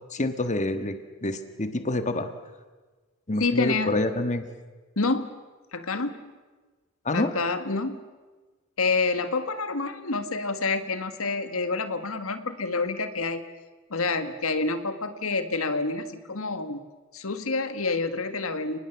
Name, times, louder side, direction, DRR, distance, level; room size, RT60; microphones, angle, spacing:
voice 1, 0.1-2.3 3.3-4.5 7.0-7.3, left 2 dB, 35° left, 9 dB, 1.5 m, -27 dB
voice 2, 3.4-3.9 5.0-5.3 5.7-6.2 7.1-8.0 8.8-13.4 13.9-16.8 17.1-18.8, left 3 dB, 85° left, 9 dB, 1.7 m, -28 dB
30.0 x 20.0 x 7.2 m, 1.3 s
head